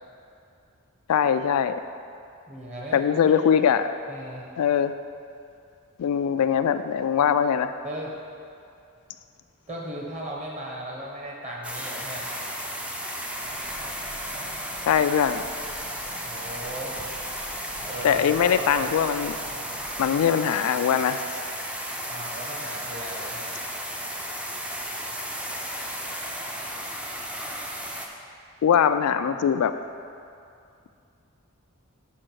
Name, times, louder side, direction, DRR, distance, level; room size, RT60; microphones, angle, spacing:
voice 1, 1.1-1.7 2.9-3.9 4.6-4.9 6.0-7.7 14.9-15.5 18.0-19.4 20.0-21.2 28.6-29.7, left 8 dB, 80° left, 10 dB, 0.3 m, -21 dB
voice 2, 2.5-3.4 4.1-4.5 7.8-8.1 9.7-12.3 16.2-17.0 17.8-18.9 22.1-23.5, right 1 dB, 35° right, -3 dB, 1.3 m, -37 dB
sound 1, 11.6-28.1, equal, 5° right, 0.4 m, -34 dB
sound 2, 13.3-20.3, equal, 75° right, 1.5 m, -48 dB
6.3 x 4.5 x 6.2 m, 2.5 s
head